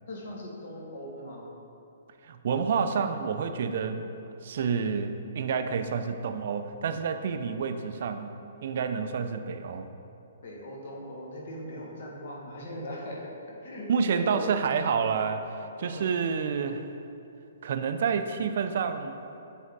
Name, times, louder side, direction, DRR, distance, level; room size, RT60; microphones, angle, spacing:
voice 1, 0.1-1.5 10.4-13.2 13.6-15.1 15.8-16.1, left 1 dB, 60° left, -2 dB, 1.3 m, -40 dB
voice 2, 2.2-4.1 4.4-8.3 8.6-9.9 13.9-15.5 15.8-16.9 17.6-19.2, right 6 dB, 55° right, 8 dB, 0.4 m, -29 dB
7.3 x 3.5 x 4.0 m, 2.8 s
hypercardioid pair, 155°, 0 cm